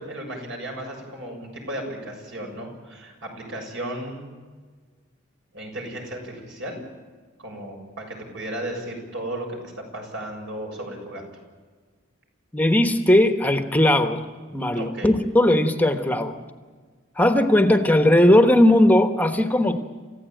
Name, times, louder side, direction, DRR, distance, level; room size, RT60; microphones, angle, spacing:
voice 1, 0.0-4.3 5.5-6.8 7.4-11.2 14.8-15.1, right 1 dB, 65° right, 2 dB, 7.0 m, -34 dB
voice 2, 12.5-14.2 14.5-16.3 17.2-19.8, left 1 dB, 10° left, 7 dB, 1.2 m, -18 dB
28.5 x 16.0 x 9.0 m, 1.5 s
head